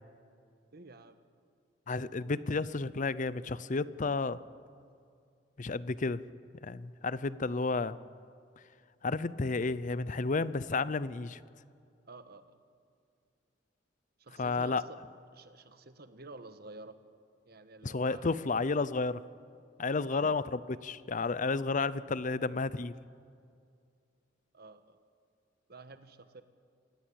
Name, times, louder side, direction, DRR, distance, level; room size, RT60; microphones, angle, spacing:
voice 1, 0.7-1.2 12.1-12.6 14.2-15.0 15.3-17.0 17.4-18.3 19.9-20.3 24.5-25.0 25.7-26.4, right 3 dB, 55° right, 10 dB, 1.4 m, -50 dB
voice 2, 1.9-4.4 5.6-6.2 6.6-8.0 9.0-11.4 14.4-14.8 17.8-19.2 19.8-22.9, left 3 dB, 45° left, 17 dB, 0.6 m, -32 dB
27.0 x 18.0 x 8.6 m, 2.3 s
head